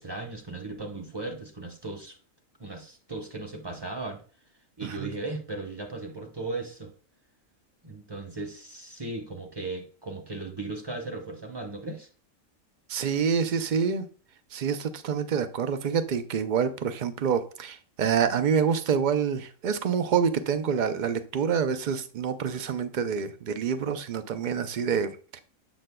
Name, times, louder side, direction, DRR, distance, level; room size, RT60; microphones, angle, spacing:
voice 1, 0.0-2.2 2.6-4.2 4.8-6.9 7.8-12.1, right 2 dB, 25° right, 0.7 m, -37 dB
voice 2, 12.9-14.1 14.5-25.4, right 7 dB, 70° right, 0.4 m, -27 dB
7.5 x 6.1 x 2.2 m
omnidirectional pair, 1.4 m